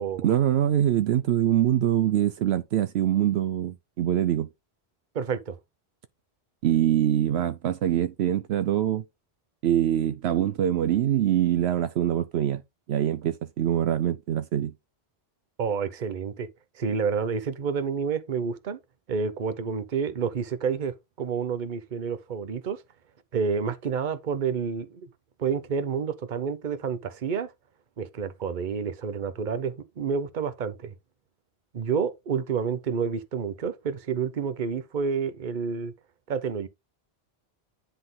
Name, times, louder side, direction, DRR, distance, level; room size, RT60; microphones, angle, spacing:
voice 1, 0.2-4.5 6.6-9.0 9.6-12.6 12.9-14.7, right 11 dB, 75° right, 0.8 m, -24 dB
voice 2, 5.1-5.6 15.6-16.5 16.8-18.8 19.1-22.8 23.3-25.1 25.4-27.5 28.0-30.9 31.7-35.9 36.3-36.7, right 6 dB, 50° right, 0.9 m, -29 dB
10.0 x 3.8 x 3.7 m
omnidirectional pair, 1.1 m